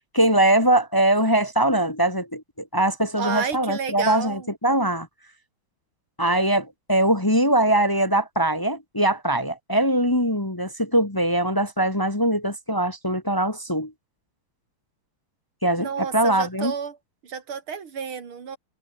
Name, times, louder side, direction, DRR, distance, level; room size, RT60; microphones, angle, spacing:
voice 1, 0.1-2.4 2.7-5.1 6.2-13.9 15.6-16.7, right 1 dB, 15° left, 1.1 m, -22 dB
voice 2, 3.2-4.5 15.8-17.0 17.2-18.6, right 6 dB, 85° right, 3.2 m, -31 dB
omnidirectional pair, 2.3 m